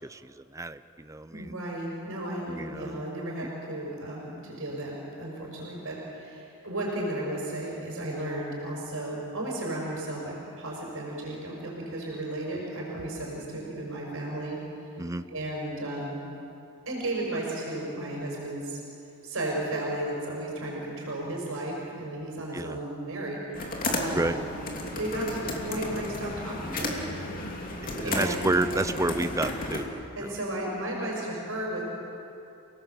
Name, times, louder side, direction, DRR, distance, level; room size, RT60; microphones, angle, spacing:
voice 1, 0.0-1.5 2.5-3.0 15.0-15.2 22.5-22.8 24.1-24.4 27.9-29.9 30.2-30.4, right 2 dB, 15° right, 12 dB, 0.5 m, -30 dB
voice 2, 1.3-14.6 15.3-16.2 16.9-18.8 19.2-23.4 24.0-24.5 24.9-27.0 28.0-28.9 30.1-31.8, right 1 dB, 70° right, -2 dB, 5.7 m, -34 dB
sound 1, 23.5-29.8, left 1 dB, 40° left, 2.9 m, -33 dB
28.5 x 18.5 x 7.6 m, 2.8 s
head